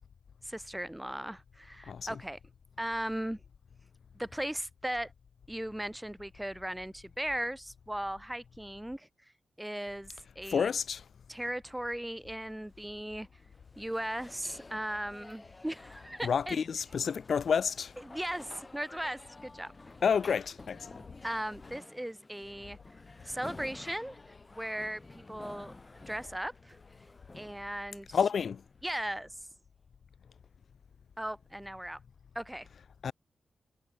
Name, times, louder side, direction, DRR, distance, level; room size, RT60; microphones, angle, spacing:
voice 1, 0.4-2.4 2.8-3.4 4.1-5.1 5.5-9.1 9.6-10.7 11.3-13.3 13.8-16.6 18.0-19.7 21.2-22.8 23.2-24.2 24.5-26.8 27.3-28.2 28.8-29.3 31.2-32.0 32.3-32.7, right 1 dB, 5° right, 2.8 m, -37 dB
voice 2, 10.5-11.0 16.2-17.9 20.0-20.8 28.1-28.6 33.0-33.1, left 6 dB, 75° left, 1.0 m, -29 dB
sound 1, 12.4-29.5, left 3 dB, 30° left, 6.0 m, -52 dB
cardioid pair, 80°, 0 cm